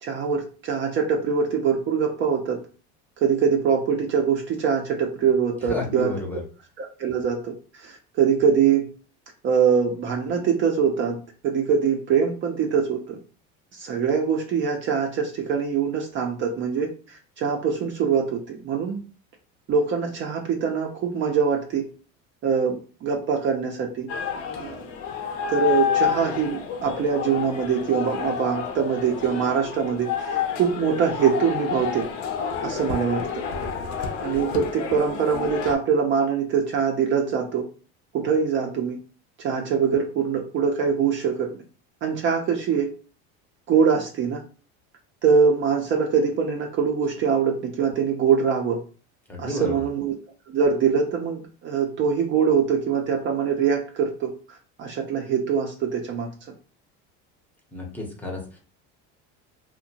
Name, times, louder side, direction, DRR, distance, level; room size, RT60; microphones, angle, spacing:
voice 1, 0.0-2.6 3.2-6.1 6.8-8.9 9.4-11.2 11.4-13.2 13.7-16.9 17.4-19.0 19.7-21.9 22.4-24.1 24.6-24.8 25.5-32.1 32.6-33.4 34.2-37.7 38.1-39.0 39.4-41.6 42.0-42.9 43.7-44.4 45.2-48.8 49.4-50.2 50.5-54.4 54.8-56.3, right 6 dB, 40° right, 2 dB, 0.4 m, -23 dB
voice 2, 5.7-6.4 49.3-49.9 57.7-58.6, left 1 dB, 5° left, -1 dB, 0.6 m, -31 dB
sound 1, 24.1-35.7, left 7 dB, 60° left, 0.6 m, -29 dB
2.6 x 2.1 x 2.7 m, 0.37 s
cardioid pair, 130°, 32 cm